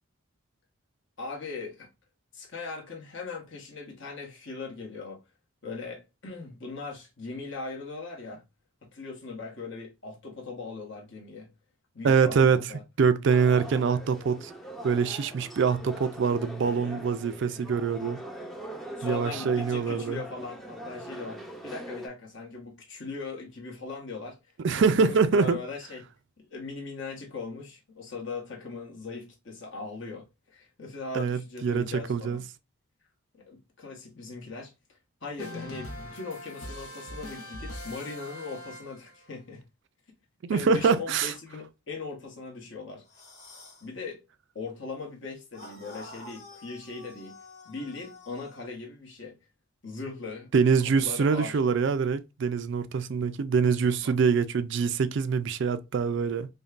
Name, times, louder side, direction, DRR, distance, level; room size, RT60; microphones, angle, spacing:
voice 1, 1.2-1.9 2.3-5.2 5.6-8.4 8.8-11.5 11.9-12.8 19.0-24.4 24.8-26.1 26.4-32.4 33.3-39.6 40.5-43.0 43.8-44.2 44.5-47.4 47.6-49.4 49.8-50.5 50.8-51.6 54.0-54.2, left 4 dB, 55° left, 1.2 m, -39 dB
voice 2, 12.0-12.7 13.0-14.5 14.8-18.2 19.0-20.2 24.6-25.6 31.1-32.4 40.4-41.3 50.5-56.5, right 5 dB, 55° right, 0.3 m, -24 dB
sound 1, 13.3-22.1, equal, ahead, 0.5 m, -42 dB
sound 2, 35.4-39.3, left 1 dB, 90° left, 0.8 m, -41 dB
sound 3, 43.0-43.9 45.5-48.7, left 1 dB, 35° left, 1.1 m, -48 dB
5.1 x 2.2 x 2.4 m
head